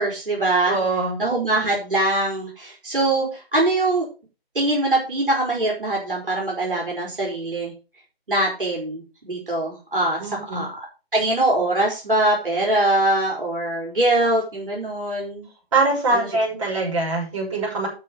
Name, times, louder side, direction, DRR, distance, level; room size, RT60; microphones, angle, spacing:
voice 1, 0.0-0.8 1.2-4.1 4.5-7.7 8.3-10.2 10.5-10.7 11.1-15.5 16.1-16.3, right 2 dB, 60° right, -1 dB, 4.4 m, -22 dB
voice 2, 0.7-1.2 10.2-10.6 15.7-17.9, right 3 dB, 30° right, -3 dB, 6.0 m, -23 dB
12.5 x 4.6 x 6.2 m, 0.32 s
figure-of-eight pair, 150°, 31 cm